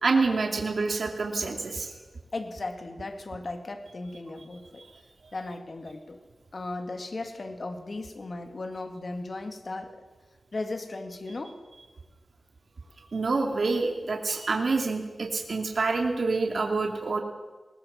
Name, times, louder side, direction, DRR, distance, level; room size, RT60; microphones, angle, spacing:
voice 1, 0.0-1.9 13.1-17.2, right 3 dB, 70° right, 3 dB, 2.6 m, -27 dB
voice 2, 2.3-4.8 5.3-6.2 6.5-10.1 10.5-11.6, left 2 dB, 50° left, 6 dB, 2.1 m, -36 dB
20.0 x 20.0 x 7.4 m, 1.3 s
wide cardioid pair, 85°, 0 cm